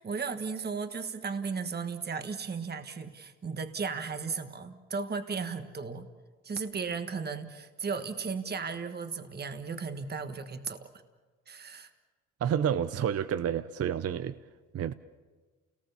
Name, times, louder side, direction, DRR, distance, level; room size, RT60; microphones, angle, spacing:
voice 1, 0.0-6.1 6.4-10.9 11.5-11.9, right 5 dB, 35° right, 1.5 m, -35 dB
voice 2, 12.4-14.3 14.7-14.9, right 9 dB, 50° right, 0.7 m, -29 dB
29.0 x 19.0 x 7.0 m
cardioid pair, 90°, 30 cm